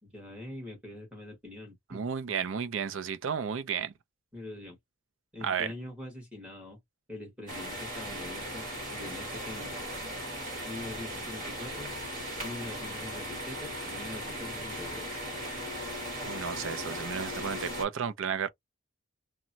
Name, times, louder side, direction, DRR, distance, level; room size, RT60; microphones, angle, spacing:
voice 1, 0.0-2.0 4.3-4.8 5.3-6.8 7.1-8.6 8.9-9.8 10.6-12.0 12.4-15.2, left 2 dB, 5° right, 1.4 m, -43 dB
voice 2, 1.9-3.9 5.4-5.7 16.2-18.5, right 7 dB, 75° right, 0.4 m, -33 dB
sound 1, 7.5-17.8, equal, 40° right, 1.5 m, -38 dB
2.9 x 2.2 x 2.6 m
head